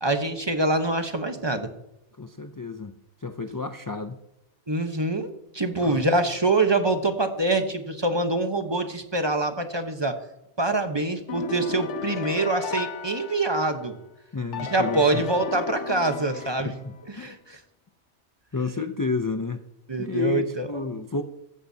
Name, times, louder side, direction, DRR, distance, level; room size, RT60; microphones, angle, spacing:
voice 1, 0.0-1.7 4.7-10.2 10.6-13.9 14.7-16.7 17.1-17.6 19.9-20.9, right 2 dB, 25° right, 6 dB, 1.0 m, -25 dB
voice 2, 2.2-2.9 3.2-4.2 5.8-6.0 14.3-15.2 16.4-17.3 18.5-19.6 20.0-21.2, left 4 dB, 30° left, 8 dB, 0.4 m, -31 dB
sound 1, 11.3-13.9 14.5-17.0, left 7 dB, 90° left, 1.0 m, -35 dB
15.0 x 14.0 x 2.8 m, 0.86 s
omnidirectional pair, 1.2 m